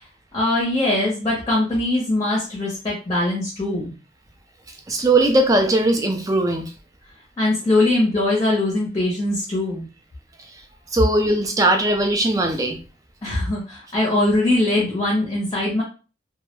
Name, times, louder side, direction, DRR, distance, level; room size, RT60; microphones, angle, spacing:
voice 1, 0.3-3.9 7.4-9.9 13.2-15.8, left 2 dB, 25° left, -4 dB, 0.6 m, -21 dB
voice 2, 4.9-6.7 10.9-12.8, right 2 dB, 20° right, 4 dB, 0.3 m, -19 dB
2.2 x 2.0 x 2.9 m, 0.35 s
head